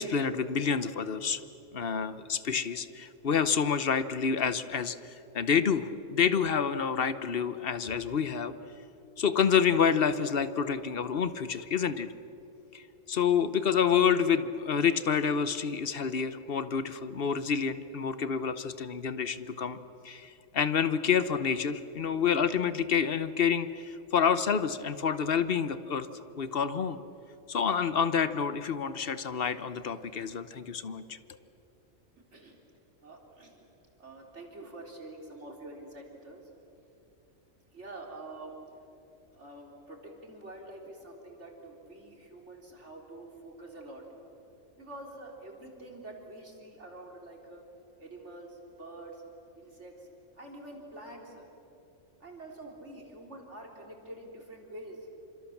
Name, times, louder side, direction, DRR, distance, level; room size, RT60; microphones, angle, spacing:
voice 1, 0.0-1.4 1.7-8.5 9.2-12.1 12.7-12.8 13.1-19.8 20.0-26.1 26.4-27.0 27.5-31.2, left 7 dB, 50° left, 13 dB, 1.1 m, -28 dB
voice 2, 33.0-33.7 34.0-36.4 37.7-38.6 39.3-44.0 44.8-47.6 48.0-49.2 49.6-50.1 50.4-51.5 52.2-55.1, right 2 dB, 55° right, 1 dB, 4.0 m, -46 dB
27.0 x 26.5 x 7.2 m, 2.9 s
omnidirectional pair, 1.4 m